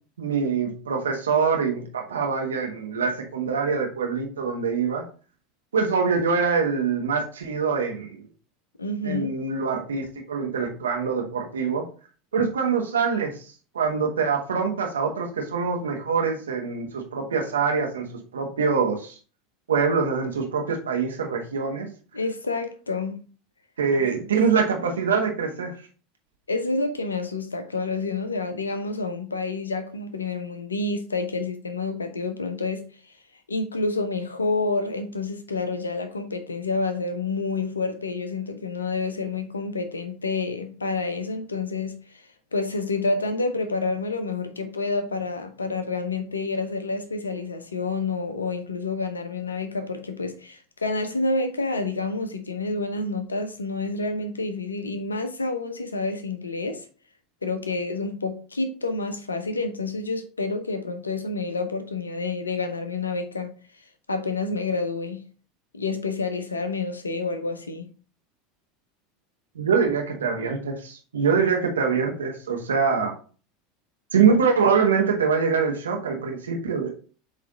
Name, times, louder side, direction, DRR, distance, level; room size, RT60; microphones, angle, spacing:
voice 1, 0.2-5.0 5.7-8.2 9.0-11.9 12.3-13.3 13.7-19.1 19.7-21.9 23.8-25.7 69.5-73.1 74.1-76.9, right 5 dB, 70° right, 1.2 m, -24 dB
voice 2, 8.8-9.4 22.1-23.2 24.0-24.3 26.5-32.8 33.5-41.9 42.5-56.8 57.4-63.5 64.1-65.2 65.7-67.9, left 3 dB, 80° left, 0.8 m, -28 dB
7.7 x 3.3 x 3.8 m
figure-of-eight pair, 80°, 0 cm